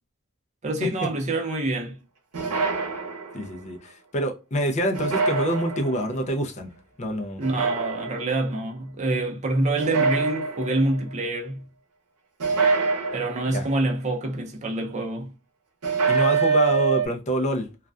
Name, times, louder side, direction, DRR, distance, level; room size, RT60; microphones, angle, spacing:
voice 1, 0.6-2.0 7.4-11.6 13.1-15.3, right 2 dB, 30° right, 0.5 m, -26 dB
sound 1, 2.3-3.6 4.9-6.1 7.4-8.4 9.8-10.9 12.4-13.7 15.8-17.1, right 5 dB, 90° right, 0.7 m, -25 dB
voice 2, 3.3-6.7 7.0-7.4 13.5-13.6 16.1-17.7, equal, 30° left, 0.5 m, -26 dB
2.4 x 2.1 x 2.4 m
head